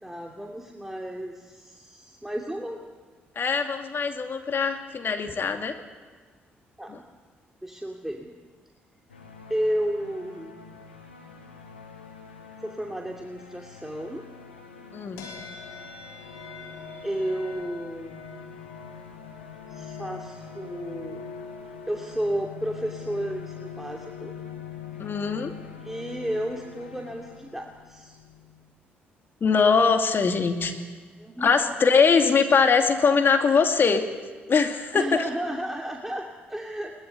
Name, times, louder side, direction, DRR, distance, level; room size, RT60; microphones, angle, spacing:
voice 1, 0.0-2.8 6.8-7.0 7.6-8.4 9.5-10.7 12.6-14.3 17.0-18.2 19.7-21.3 21.9-24.3 25.8-28.2 31.2-31.8 34.9-36.9, right 1 dB, 5° right, 1 dB, 2.6 m, -32 dB
voice 2, 3.4-5.7 14.9-15.3 25.0-25.5 29.4-30.7 31.4-34.0 34.5-35.1, left 5 dB, 40° left, 5 dB, 2.5 m, -22 dB
sound 1, 9.1-28.0, left 4 dB, 85° left, 1.8 m, -48 dB
sound 2, 15.2-28.7, left 7 dB, 65° left, 3.4 m, -42 dB
22.0 x 20.5 x 8.3 m, 1.5 s
figure-of-eight pair, 40°, 6 cm